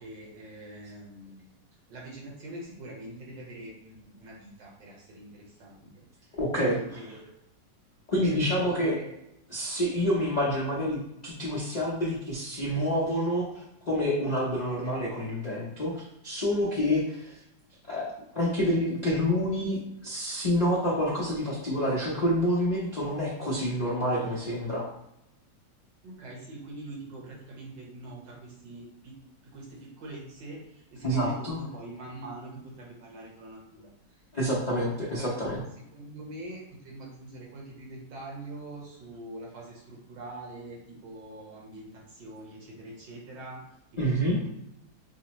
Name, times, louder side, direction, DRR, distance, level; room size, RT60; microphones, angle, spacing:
voice 1, 0.0-1.5 1.9-6.0 6.5-7.3 8.2-9.1 26.0-29.2 29.4-33.9 35.1-35.3 35.9-43.6 44.0-44.5, right 2 dB, 75° right, -3 dB, 1.7 m, -43 dB
voice 2, 6.4-6.8 8.1-9.0 9.5-17.4 17.9-24.9 31.0-31.6 34.3-35.6 44.0-44.4, equal, 90° left, -7 dB, 0.3 m, -28 dB
5.3 x 2.1 x 3.0 m, 0.84 s
omnidirectional pair, 2.0 m